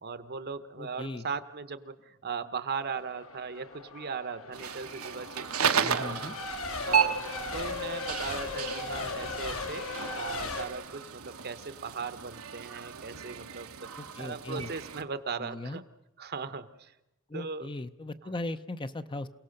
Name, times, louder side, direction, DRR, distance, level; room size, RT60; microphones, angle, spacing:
voice 1, 0.0-6.1 6.8-7.2 7.5-9.9 10.2-13.7 14.2-15.8 16.2-16.9 17.3-17.7 18.2-18.3, right 5 dB, 50° right, 12 dB, 1.0 m, -38 dB
voice 2, 0.8-1.3 5.8-6.3 14.0-14.7 15.4-15.8 17.3-19.3, left 2 dB, 25° left, 11 dB, 0.7 m, -38 dB
Race car auto racing / Accelerating revving vroom / Mechanisms, 2.8-10.7, left 3 dB, 70° left, 2.4 m, -38 dB
sound 1, 4.5-15.0, right 7 dB, 85° right, 1.2 m, -34 dB
28.5 x 18.0 x 6.6 m, 0.94 s
head